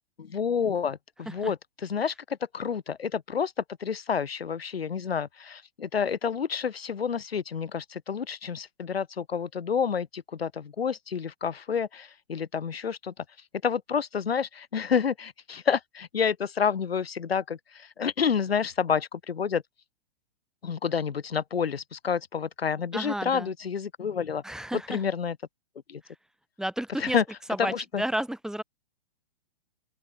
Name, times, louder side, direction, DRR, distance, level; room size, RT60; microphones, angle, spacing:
voice 1, 0.2-13.2 13.6-19.6 20.6-24.4 24.7-25.4 25.9-26.0 27.0-27.2 27.6-28.0, left 6 dB, 90° left, 3.1 m, -29 dB
voice 2, 22.9-23.5 24.4-25.0 26.0-26.1 26.6-27.2 27.5-28.6, right 1 dB, ahead, 3.4 m, -32 dB
open air
hypercardioid pair, 130°, 29 cm